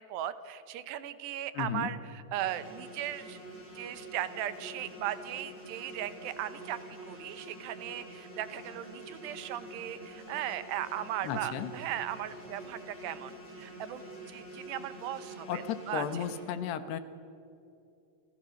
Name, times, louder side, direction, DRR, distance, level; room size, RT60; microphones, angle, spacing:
voice 1, 0.0-3.4 3.8-16.1, right 12 dB, 90° right, 12 dB, 3.4 m, -37 dB
voice 2, 1.5-1.9 11.2-11.7 15.5-17.0, left 8 dB, 80° left, 11 dB, 3.4 m, -34 dB
sound 1, 2.3-16.4, right 1 dB, 20° left, 7.7 m, -47 dB
29.5 x 28.0 x 6.6 m, 2.7 s
omnidirectional pair, 4.7 m